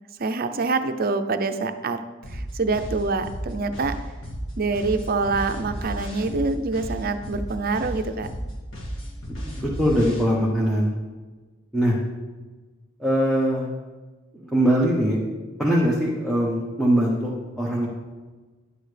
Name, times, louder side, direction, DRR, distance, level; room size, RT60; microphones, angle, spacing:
voice 1, 0.2-2.0 2.3-4.0 4.6-8.3, right 3 dB, 50° right, 8 dB, 0.6 m, -25 dB
sound 1, 2.2-10.2, equal, 70° left, 1.9 m, -33 dB
voice 2, 9.4-11.0 11.7-12.0 13.0-13.7 14.3-15.2 15.6-17.9, equal, ahead, -5 dB, 1.0 m, -22 dB
10.5 x 8.6 x 3.4 m, 1.3 s
head